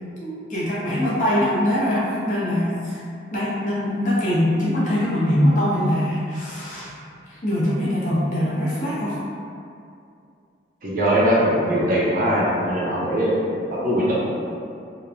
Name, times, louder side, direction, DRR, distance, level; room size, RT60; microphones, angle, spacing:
voice 1, 0.2-3.0 3.3-6.9 7.3-9.1, left 1 dB, 40° left, -8 dB, 0.7 m, -22 dB
voice 2, 10.8-13.4 13.8-14.2, equal, 45° right, -7 dB, 0.5 m, -20 dB
3.0 x 2.1 x 2.4 m, 2.5 s
head